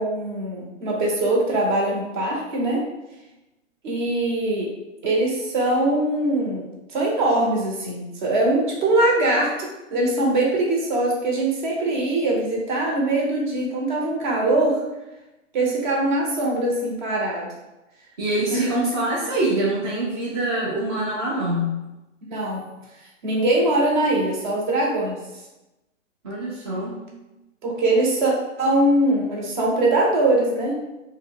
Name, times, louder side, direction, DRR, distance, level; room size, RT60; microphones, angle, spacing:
voice 1, 0.0-2.8 3.8-4.7 5.0-14.8 15.5-17.5 18.5-18.8 22.3-22.6 23.2-25.2 27.6-28.3 28.6-30.8, right 2 dB, 40° right, -2 dB, 0.8 m, -22 dB
voice 2, 18.2-21.8 26.2-27.0, right 1 dB, 25° right, -8 dB, 0.4 m, -25 dB
2.7 x 2.2 x 3.5 m, 0.99 s
hypercardioid pair, 145°, 38 cm